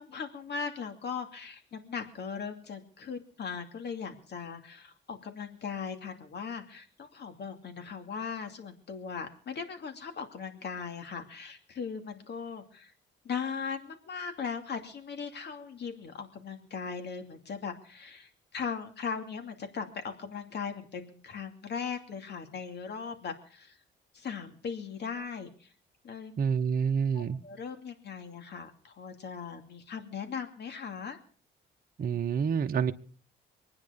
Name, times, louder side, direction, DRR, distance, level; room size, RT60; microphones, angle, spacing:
voice 1, 0.0-12.9 13.2-23.8 24.1-25.7 26.0-26.4 27.1-31.2, left 6 dB, 60° left, 6 dB, 2.6 m, -39 dB
voice 2, 26.4-27.4 32.0-32.9, right 7 dB, 45° right, 5 dB, 1.0 m, -28 dB
24.0 x 9.7 x 5.3 m, 0.43 s
cardioid pair, 90°, 20 cm